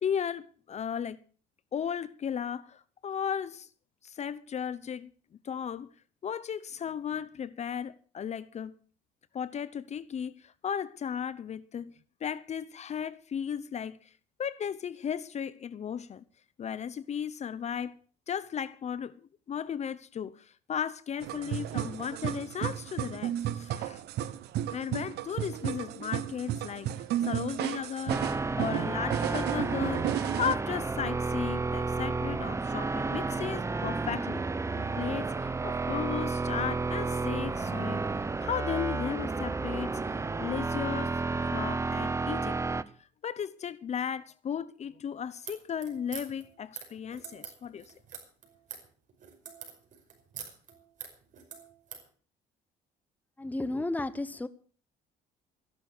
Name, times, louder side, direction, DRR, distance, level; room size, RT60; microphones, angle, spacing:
voice 1, 0.0-1.2 1.7-3.7 4.0-5.1 5.4-5.9 6.2-8.7 9.3-11.9 12.2-14.0 14.4-16.2 16.6-17.9 18.3-19.2 19.5-24.0 24.7-26.9 27.2-28.2 28.6-30.1 30.4-34.4 35.0-41.2 41.5-42.6 43.2-47.9, left 8 dB, 40° left, 0.8 m, -35 dB
sound 1, 21.2-30.5, right 12 dB, 75° right, 1.1 m, -33 dB
sound 2, 28.1-42.8, right 3 dB, 15° right, 0.8 m, -31 dB
sound 3, 45.4-52.1, right 7 dB, 50° right, 5.3 m, -45 dB
voice 2, 53.4-54.5, left 2 dB, 10° left, 1.0 m, -32 dB
15.0 x 11.5 x 6.6 m
cardioid pair, 110°, 17 cm